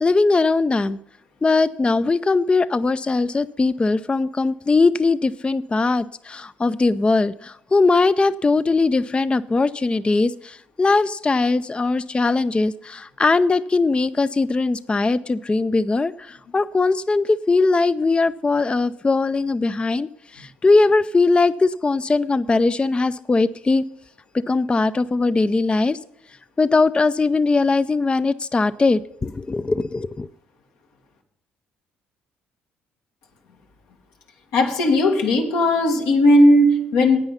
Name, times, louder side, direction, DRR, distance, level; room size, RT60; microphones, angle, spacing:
voice 1, 0.0-1.0 1.4-23.8 24.5-26.0 26.6-30.3, left 3 dB, 20° left, 15 dB, 0.4 m, -20 dB
voice 2, 34.5-37.2, left 1 dB, 80° left, 1 dB, 1.8 m, -16 dB
9.8 x 8.7 x 5.6 m, 0.81 s
hypercardioid pair, 60°, 5 cm